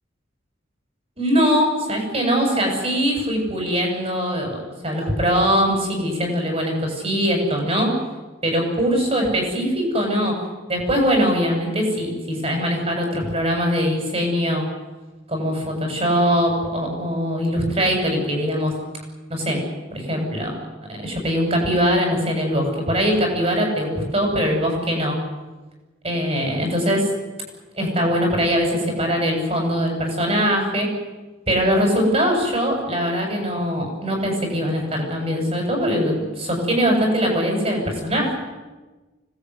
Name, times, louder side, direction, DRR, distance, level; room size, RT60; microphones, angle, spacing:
voice 1, 1.2-7.9 8.4-10.4 10.7-14.7 15.3-18.8 19.3-19.6 19.9-20.5 20.9-25.2 26.0-27.1 27.7-30.9 31.5-38.4, equal, 30° right, 2 dB, 7.9 m, -22 dB
25.5 x 19.5 x 9.8 m, 1.2 s
head